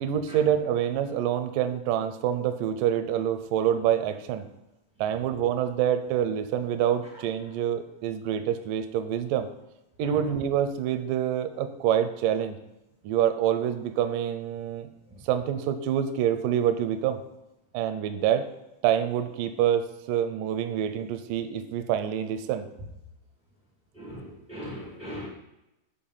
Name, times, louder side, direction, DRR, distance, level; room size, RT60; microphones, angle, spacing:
voice 1, 0.0-4.4 5.0-9.5 10.0-12.6 13.0-14.9 15.2-17.2 17.7-18.4 18.8-22.7, right 10 dB, 80° right, 9 dB, 1.9 m, -26 dB
voice 2, 23.9-25.3, equal, 10° right, -6 dB, 0.4 m, -39 dB
7.0 x 4.9 x 5.5 m, 0.94 s
omnidirectional pair, 4.4 m